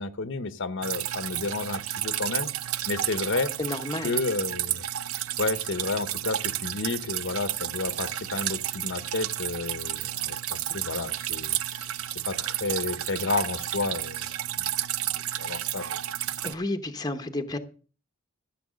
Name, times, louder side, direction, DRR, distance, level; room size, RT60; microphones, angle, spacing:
voice 1, 0.0-2.5 2.9-3.5 4.0-4.8 5.4-11.9 12.3-14.3 15.4-15.8, left 3 dB, 60° left, 0.9 m, -31 dB
Drip, 0.8-16.5, right 12 dB, 75° right, 0.6 m, -32 dB
voice 2, 3.6-4.2 16.4-17.6, left 2 dB, 20° left, 0.9 m, -31 dB
14.5 x 7.6 x 6.3 m
head